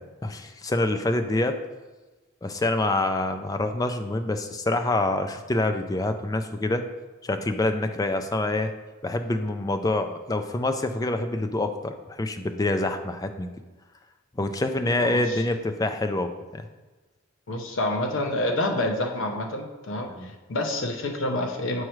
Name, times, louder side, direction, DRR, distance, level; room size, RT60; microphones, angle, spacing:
voice 1, 0.0-1.6 2.4-6.8 7.2-8.7 9.0-13.5 14.4-16.6 20.2-20.3, left 2 dB, 20° left, 7 dB, 0.4 m, -26 dB
voice 2, 15.0-15.4 17.5-21.8, left 1 dB, 70° left, 3 dB, 0.8 m, -28 dB
7.5 x 4.7 x 3.1 m, 1.2 s
head